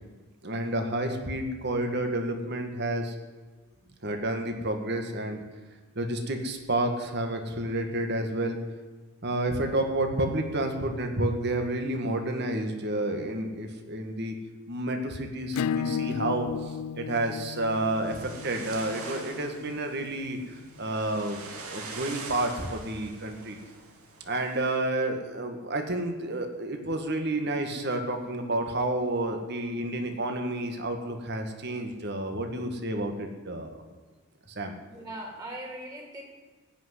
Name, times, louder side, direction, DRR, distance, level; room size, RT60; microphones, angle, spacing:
voice 1, 0.4-3.2 4.0-5.4 6.0-8.6 9.2-14.4 14.7-21.4 21.7-23.6 24.2-33.8 34.6-34.8, right 1 dB, 50° right, 5 dB, 1.8 m, -30 dB
voice 2, 3.6-4.2 34.8-36.2, right 1 dB, 20° right, 0 dB, 3.1 m, -41 dB
Acoustic guitar / Strum, 15.5-20.8, left 7 dB, 85° left, 0.3 m, -34 dB
sound 1, 17.1-24.8, right 4 dB, 75° right, 2.4 m, -44 dB
16.5 x 6.2 x 10.0 m, 1.3 s
head